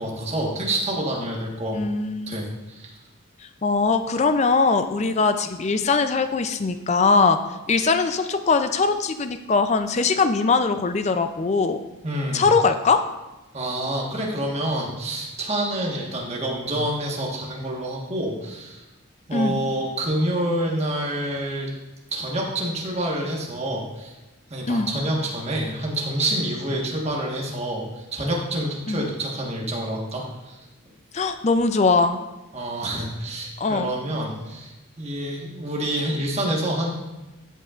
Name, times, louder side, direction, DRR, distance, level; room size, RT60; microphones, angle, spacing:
voice 1, 0.0-1.8 2.3-2.9 12.0-12.5 13.5-18.8 19.3-21.7 22.1-24.1 24.5-30.7 32.5-36.9, right 1 dB, 30° right, -2 dB, 1.4 m, -27 dB
voice 2, 1.7-2.4 3.6-7.4 7.7-11.8 12.3-13.0 19.3-19.6 24.7-24.9 28.9-29.1 31.1-32.2 33.6-33.9, left 4 dB, 30° left, 9 dB, 0.4 m, -21 dB
14.0 x 5.4 x 2.5 m, 1.1 s
head